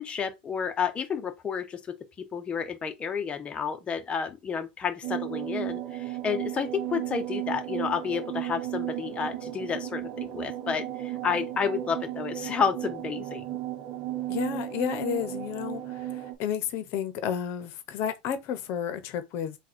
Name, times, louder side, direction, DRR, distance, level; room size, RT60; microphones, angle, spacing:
voice 1, 0.0-1.8 2.3-13.4, left 6 dB, 20° left, 0.9 m, -31 dB
sound 1, 5.0-16.3, right 13 dB, 55° right, 1.0 m, -34 dB
voice 2, 14.3-19.6, left 9 dB, 50° left, 0.9 m, -32 dB
3.8 x 2.4 x 4.5 m
supercardioid pair, 125°, 5 cm